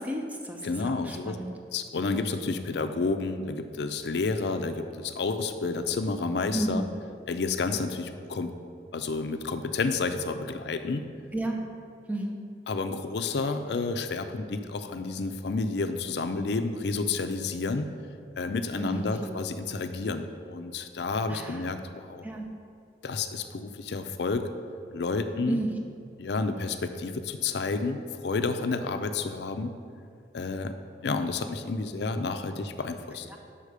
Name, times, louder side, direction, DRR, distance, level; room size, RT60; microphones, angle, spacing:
voice 1, 0.0-1.5 6.5-6.9 11.3-11.6 12.1-12.4 18.8-19.4 21.3-21.7 22.2-22.5 25.5-25.7 33.3-33.4, right 1 dB, 10° right, 2 dB, 0.5 m, -32 dB
voice 2, 0.6-1.4 1.7-6.8 7.3-8.5 8.9-11.1 12.7-17.9 18.4-22.2 23.0-24.5 24.9-25.6 26.2-29.7 30.3-30.7 31.0-33.3, left 3 dB, 65° left, 8 dB, 0.5 m, -30 dB
5.6 x 4.9 x 6.6 m, 2.4 s
head